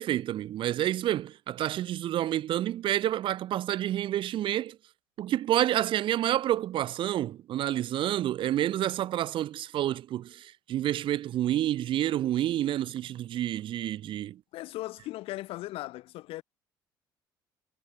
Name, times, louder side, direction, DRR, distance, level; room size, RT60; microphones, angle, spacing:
voice 1, 0.0-4.8 5.2-14.4, right 12 dB, 55° right, 0.5 m, -29 dB
voice 2, 14.5-16.4, left 17 dB, 65° left, 0.6 m, -38 dB
hypercardioid pair, 60°, 10 cm